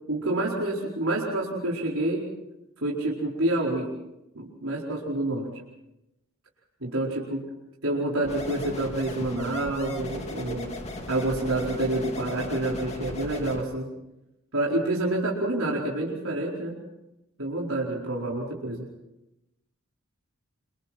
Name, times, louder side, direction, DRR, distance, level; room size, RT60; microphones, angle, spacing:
voice 1, 0.1-2.2 2.8-3.9 4.3-5.5 6.8-7.4 7.8-10.7 11.1-13.9 14.5-16.7 17.4-18.8, right 1 dB, 70° right, -4 dB, 4.7 m, -28 dB
sound 1, 8.2-13.6, left 1 dB, 30° left, 2.5 m, -37 dB
29.5 x 26.0 x 4.4 m, 0.93 s
head